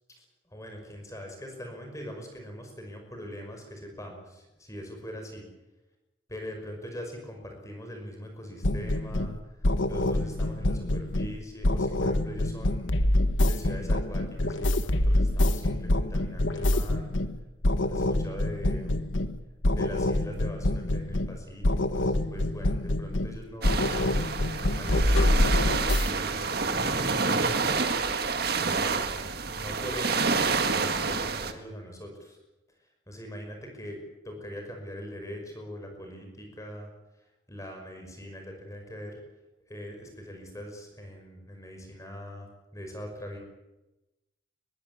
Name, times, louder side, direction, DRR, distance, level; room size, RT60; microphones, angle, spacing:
voice 1, 0.2-5.5 6.3-9.5 9.9-12.9 13.4-17.1 17.8-19.0 19.7-23.8 24.7-28.0 28.3-29.1 29.5-30.3 30.7-32.4 33.1-34.0 34.2-36.9 37.5-39.2 39.7-42.5 42.7-43.4, equal, 15° left, 3 dB, 5.7 m, -42 dB
sound 1, 8.6-9.4 9.6-11.4 11.6-17.4 17.6-19.4 19.6-21.4 21.6-23.4 23.6-26.1, left 1 dB, 80° left, 1.4 m, -26 dB
sound 2, 23.6-31.5, right 4 dB, 55° right, 1.7 m, -28 dB
22.5 x 16.0 x 9.7 m, 1.0 s
head